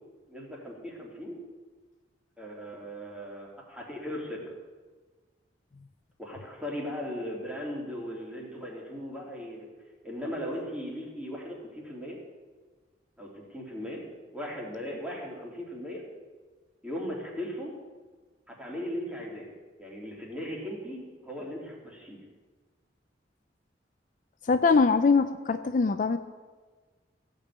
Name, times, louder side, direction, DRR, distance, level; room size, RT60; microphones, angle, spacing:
voice 1, 0.3-1.4 2.4-4.5 6.2-9.7 10.0-12.2 13.2-14.0 14.3-16.0 16.8-17.7 18.5-19.5 19.8-22.2, equal, 5° right, -3 dB, 2.7 m, -38 dB
voice 2, 24.4-26.2, left 4 dB, 45° left, 9 dB, 0.4 m, -22 dB
15.5 x 5.4 x 8.1 m, 1.4 s
head